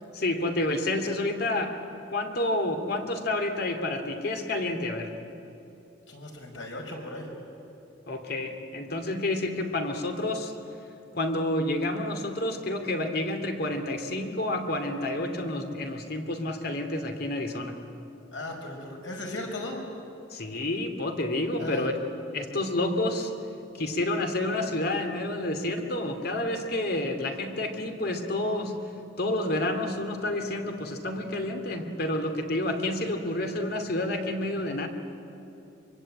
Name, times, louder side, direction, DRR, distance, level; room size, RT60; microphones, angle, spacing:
voice 1, 0.1-1.8 2.1-5.1 8.1-10.5 11.1-17.8 20.3-21.9 22.3-23.3 23.7-28.7 29.2-34.9, left 1 dB, 55° left, 5 dB, 2.7 m, -29 dB
voice 2, 6.1-7.3 18.3-19.8 21.6-21.9, left 1 dB, 90° left, 1 dB, 5.7 m, -36 dB
25.0 x 24.5 x 8.9 m, 2.9 s
head